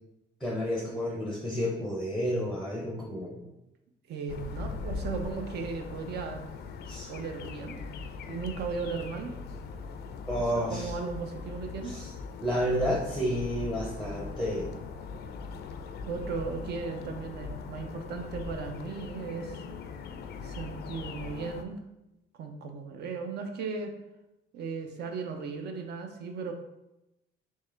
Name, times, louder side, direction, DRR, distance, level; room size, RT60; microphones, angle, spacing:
voice 1, 0.4-3.4 6.9-7.1 10.3-10.9 11.8-12.1 12.4-14.7, equal, ahead, -2 dB, 0.6 m, -30 dB
voice 2, 4.1-6.4 7.1-7.8 8.3-9.3 10.4-12.0 16.1-19.6 20.4-21.8 22.4-23.9 24.5-26.5, right 5 dB, 60° right, 4 dB, 0.6 m, -36 dB
sound 1, 4.3-21.6, left 4 dB, 60° left, 0.4 m, -40 dB
3.6 x 3.1 x 3.2 m, 0.93 s
cardioid pair, 125°, 19 cm